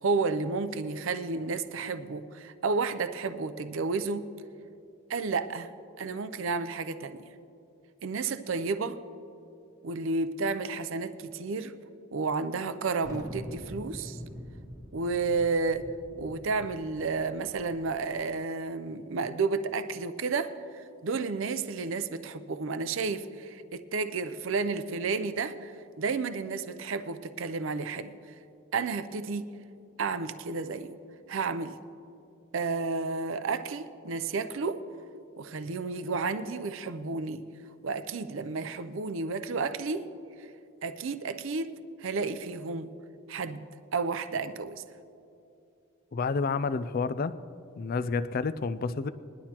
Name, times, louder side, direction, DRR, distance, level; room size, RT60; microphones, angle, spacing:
voice 1, 0.0-4.2 5.1-5.7 6.0-7.2 8.0-9.0 9.8-11.7 12.1-14.2 14.9-15.9 16.2-28.1 28.7-29.5 30.0-30.9 31.3-31.8 32.5-34.8 35.4-37.4 37.8-40.1 40.4-40.5 40.8-42.9 43.3-43.7 43.9-44.8, right 4 dB, 65° right, 11 dB, 0.5 m, -31 dB
Thunder, 13.0-18.2, equal, 15° right, 1.1 m, -44 dB
voice 2, 46.1-47.4 47.8-49.1, left 4 dB, 45° left, 14 dB, 0.4 m, -29 dB
21.0 x 11.5 x 2.9 m, 2.6 s
head